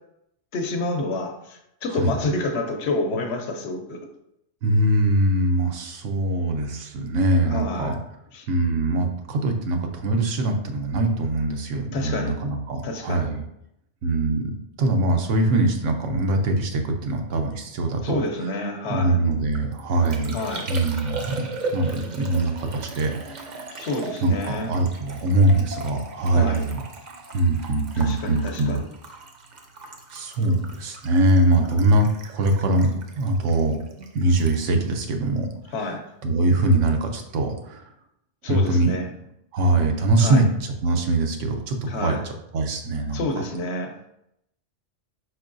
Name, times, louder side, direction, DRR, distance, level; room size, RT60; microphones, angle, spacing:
voice 1, 0.5-4.0 7.5-8.0 8.3-8.5 11.9-12.4 12.8-13.3 18.0-19.2 20.3-20.7 23.8-24.7 26.3-26.6 28.0-28.9 35.7-36.1 38.4-39.1 40.2-40.5 41.9-42.2 43.1-43.9, left 2 dB, 65° left, 4 dB, 0.9 m, -28 dB
voice 2, 4.6-8.0 8.5-13.4 14.0-14.5 14.8-18.2 18.9-20.4 20.7-23.5 24.2-26.8 27.3-28.8 30.1-32.9 33.1-33.8 34.1-35.5 36.2-37.8 38.4-38.9 39.5-42.2 42.5-43.2, right 2 dB, 85° right, 4 dB, 1.0 m, -22 dB
Liquid, 19.3-35.9 36.2-36.7, right 3 dB, 50° right, 0.6 m, -38 dB
4.6 x 4.5 x 2.5 m, 0.80 s
omnidirectional pair, 1.3 m